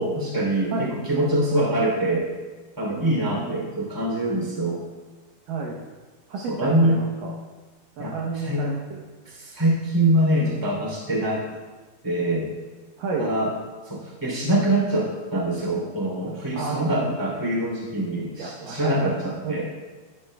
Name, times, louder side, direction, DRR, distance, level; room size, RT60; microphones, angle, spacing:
voice 1, 0.0-2.3 2.8-4.8 6.5-7.0 8.0-8.7 9.2-11.4 12.0-12.5 13.2-13.5 13.8-19.6, right 1 dB, 5° right, -3 dB, 2.2 m, -24 dB
voice 2, 2.9-3.6 5.5-5.8 6.3-7.4 8.0-9.0 13.0-13.3 16.5-17.4 18.4-19.1 19.4-19.6, right 4 dB, 70° right, -2 dB, 2.1 m, -31 dB
14.0 x 11.5 x 2.3 m, 1.3 s
omnidirectional pair, 4.9 m